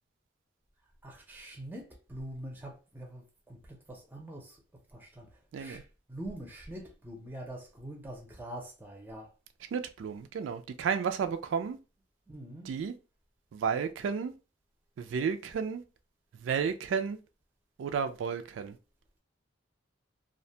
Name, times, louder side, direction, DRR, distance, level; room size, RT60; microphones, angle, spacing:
voice 1, 1.0-4.6 4.9-5.3 5.6-5.8 6.1-9.3 12.3-12.7, right 1 dB, 10° right, 0.5 m, -44 dB
voice 2, 5.5-5.8 9.7-11.8 12.6-12.9 13.5-14.3 15.0-15.8 16.4-17.2 17.8-18.8, right 6 dB, 75° right, 0.3 m, -32 dB
2.4 x 2.1 x 2.7 m
head